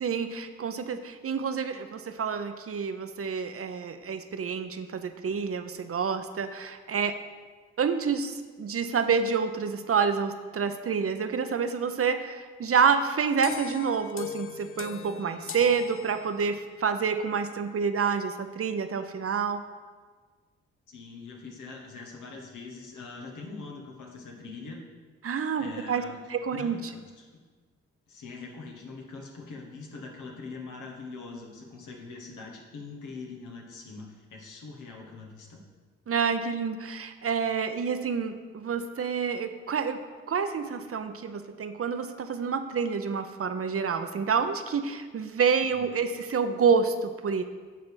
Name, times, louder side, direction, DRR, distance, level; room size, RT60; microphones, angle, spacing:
voice 1, 0.0-7.2 7.8-19.6 25.2-26.0 26.3-26.8 36.1-40.0 40.3-47.4, right 6 dB, 50° right, 9 dB, 0.7 m, -28 dB
sound 1, 13.4-16.7, left 9 dB, 45° left, 0.5 m, -40 dB
voice 2, 20.9-24.8 25.6-26.2 26.5-27.3 28.1-35.6 45.7-45.8, left 4 dB, 80° left, 1 dB, 1.4 m, -43 dB
9.1 x 3.8 x 6.3 m, 1.4 s
supercardioid pair, 40°, 30 cm